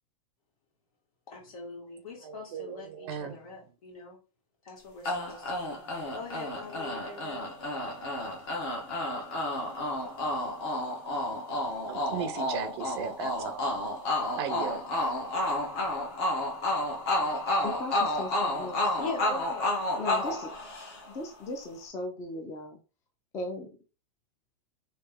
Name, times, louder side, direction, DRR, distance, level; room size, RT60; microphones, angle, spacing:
voice 1, 1.3-4.2 4.6-5.8 6.1-7.4 19.0-19.7, left 3 dB, 80° left, 2.0 m, -42 dB
voice 2, 2.2-3.4 11.9-13.8 14.4-14.8, right 8 dB, 45° right, 0.5 m, -36 dB
sound 1, 5.0-21.2, left 1 dB, 45° left, 1.2 m, -31 dB
voice 3, 17.6-18.8 20.0-20.5 21.1-22.8 23.3-23.7, left 2 dB, 15° left, 0.4 m, -37 dB
3.2 x 2.7 x 3.5 m
supercardioid pair, 170°, 18 cm